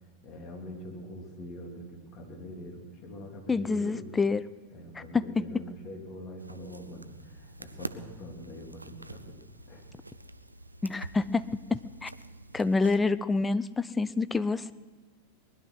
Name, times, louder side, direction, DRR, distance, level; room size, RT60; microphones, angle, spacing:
voice 1, 0.2-4.1 4.7-9.4 9.7-9.8, left 1 dB, 35° left, 1 dB, 3.0 m, -44 dB
voice 2, 3.5-4.5 5.1-5.5 10.8-12.1 12.5-14.7, left 4 dB, 10° left, 15 dB, 0.5 m, -27 dB
sound 1, 6.4-13.0, right 2 dB, 85° right, 0.5 m, -46 dB
20.0 x 11.5 x 6.2 m, 1.4 s
figure-of-eight pair, 90°, 0 cm